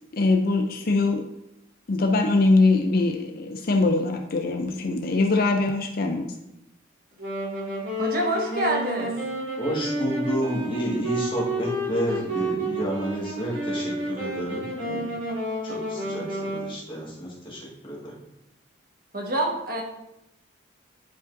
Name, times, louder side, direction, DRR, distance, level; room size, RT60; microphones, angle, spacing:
voice 1, 0.1-1.2 1.9-6.3, left 3 dB, 45° left, 3 dB, 0.5 m, -22 dB
Wind instrument woodwind instrument, 7.2-16.7, right 1 dB, 70° right, 2.8 m, -30 dB
voice 2, 8.0-9.1 19.1-19.8, right 1 dB, 45° right, 0 dB, 1.3 m, -26 dB
voice 3, 9.6-15.1 15.6-18.1, equal, 25° left, -4 dB, 1.7 m, -30 dB
10.0 x 5.1 x 2.6 m, 0.88 s
head